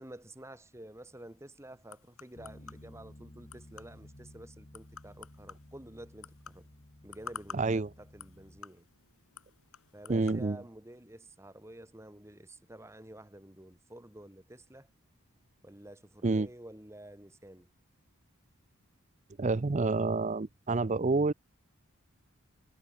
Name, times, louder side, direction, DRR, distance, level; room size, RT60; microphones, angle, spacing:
voice 1, 0.0-6.7 7.0-8.9 9.9-14.9 15.6-17.7, right 1 dB, 10° right, 1.5 m, -50 dB
sound 1, 1.0-10.4, left 6 dB, 75° left, 6.5 m, -51 dB
Bass guitar, 2.4-8.6, left 1 dB, 35° left, 1.8 m, -54 dB
voice 2, 7.5-7.9 10.1-10.6 16.2-16.5 19.4-21.3, right 3 dB, 30° right, 0.5 m, -28 dB
head